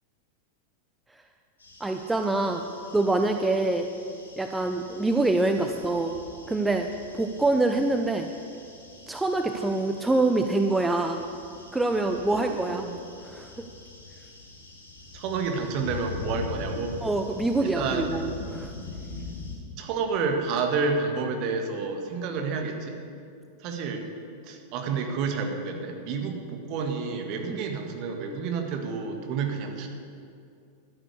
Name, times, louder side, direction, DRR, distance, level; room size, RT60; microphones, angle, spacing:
sound 1, 1.6-19.5, left 3 dB, 75° left, 3.3 m, -43 dB
voice 1, 1.8-2.6 2.9-3.9 4.4-6.2 6.5-6.9 7.1-8.3 9.1-11.2 11.7-12.9 13.2-13.7 17.0-18.7 27.5-27.6, right 2 dB, 10° right, 5 dB, 0.6 m, -25 dB
voice 2, 12.3-13.0 15.1-17.0 17.6-18.2 19.8-23.0 23.6-24.0 24.4-29.9, right 4 dB, 40° right, 4 dB, 1.7 m, -30 dB
12.0 x 9.7 x 6.8 m, 2.4 s
figure-of-eight pair, 90°, 0 cm